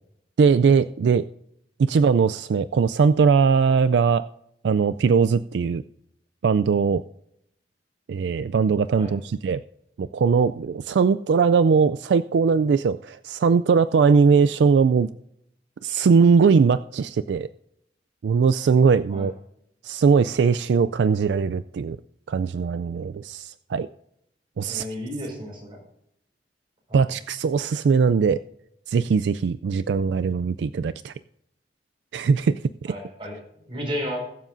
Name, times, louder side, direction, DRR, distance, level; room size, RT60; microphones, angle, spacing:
voice 1, 0.4-1.3 1.8-4.2 4.6-5.8 6.4-7.0 8.1-9.6 10.0-15.1 15.8-17.5 18.2-19.3 19.8-22.0 22.3-23.9 24.6-24.9 26.9-28.4 28.9-31.1 32.1-32.9, right 5 dB, 75° right, 13 dB, 0.3 m, -20 dB
voice 2, 24.6-25.8 26.9-27.1 32.9-34.2, equal, 30° right, -2 dB, 5.0 m, -33 dB
21.5 x 7.4 x 2.6 m, 0.75 s
head